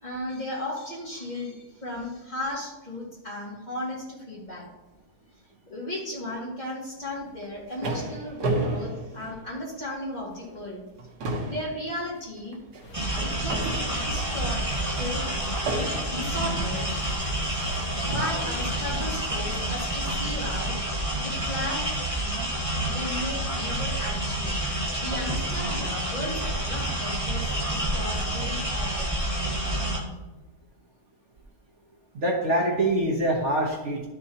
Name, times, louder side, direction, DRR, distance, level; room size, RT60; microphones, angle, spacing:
voice 1, 0.0-4.6 5.7-10.8 11.4-12.6 13.0-13.7 13.9-14.6 15.0-15.3 16.1-16.9 18.1-20.8 21.2-22.5 22.9-24.6 25.0-29.3, left 1 dB, 25° left, -5 dB, 2.4 m, -35 dB
sound 1, 7.3-10.0 10.4-10.6 10.9-14.4 15.7-16.4 17.3-17.4 18.1-18.6, right 2 dB, 75° right, 1.7 m, -32 dB
sound 2, 12.8-20.6, left 1 dB, 75° left, 1.8 m, -44 dB
sound 3, 12.9-30.0, right 1 dB, 20° right, 1.7 m, -29 dB
voice 2, 32.1-34.1, right 1 dB, 50° right, -2 dB, 1.2 m, -24 dB
12.0 x 6.4 x 2.8 m, 1.0 s
omnidirectional pair, 1.7 m